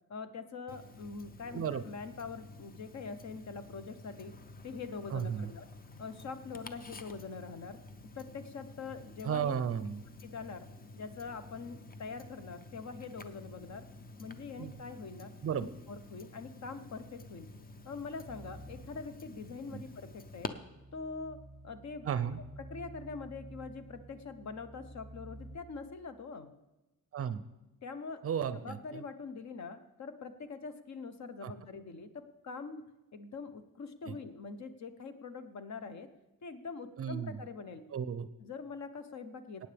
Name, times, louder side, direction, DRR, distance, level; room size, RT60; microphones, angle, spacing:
voice 1, 0.1-4.3 4.6-5.7 6.0-7.8 8.1-9.5 10.2-10.6 10.9-13.9 14.2-15.3 15.6-17.5 17.8-20.5 20.9-21.4 21.6-22.1 22.6-26.5 27.8-28.2 28.5-36.1 36.4-37.8 38.4-39.7, left 4 dB, 50° left, 10 dB, 0.9 m, -44 dB
Tick-tock, 0.7-20.5, left 3 dB, 25° left, 0.6 m, -50 dB
voice 2, 5.1-5.5 9.2-10.0 14.6-14.7 15.4-15.7 19.7-19.8 22.1-22.4 27.1-27.4 28.2-28.8 31.4-31.5 34.1-34.2 37.0-37.4 37.9-38.3, right 8 dB, 40° right, 13 dB, 0.5 m, -33 dB
sound 1, 18.3-25.6, right 2 dB, ahead, 1.1 m, -52 dB
22.0 x 9.3 x 3.4 m, 1.0 s
cardioid pair, 145°, 35 cm